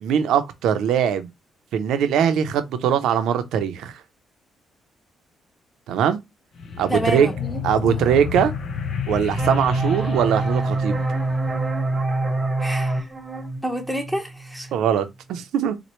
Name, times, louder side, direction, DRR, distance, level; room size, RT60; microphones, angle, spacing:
voice 1, 0.0-1.3 1.7-4.0 5.9-6.2 6.8-7.3 7.6-8.5 9.1-11.0 14.7-15.8, right 8 dB, 80° right, 0.6 m, -21 dB
sound 1, 6.6-11.5, left 7 dB, 60° left, 0.7 m, -31 dB
voice 2, 6.9-8.2 12.6-13.1 13.6-14.7, equal, ahead, 0.9 m, -29 dB
sound 2, 9.4-14.8, right 2 dB, 25° right, 0.9 m, -25 dB
4.3 x 2.1 x 3.0 m
cardioid pair, 90°, 0 cm